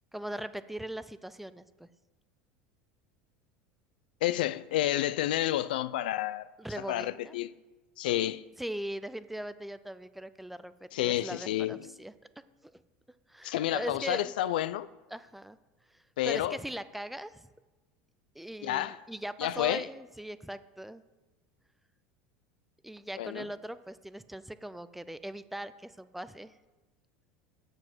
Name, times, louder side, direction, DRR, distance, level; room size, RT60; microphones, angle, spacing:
voice 1, 0.1-1.9 6.6-7.3 8.6-12.1 12.6-12.7 13.3-14.3 15.1-15.6 16.3-17.5 18.4-21.0 22.8-26.5, right 1 dB, 5° right, 0.4 m, -40 dB
voice 2, 4.2-6.5 6.8-7.6 8.0-8.4 10.9-11.9 13.4-14.9 16.2-16.6 18.6-19.0 19.4-19.8 23.2-23.5, left 14 dB, 90° left, 0.4 m, -30 dB
7.6 x 7.0 x 6.1 m
supercardioid pair, 120°, 5 cm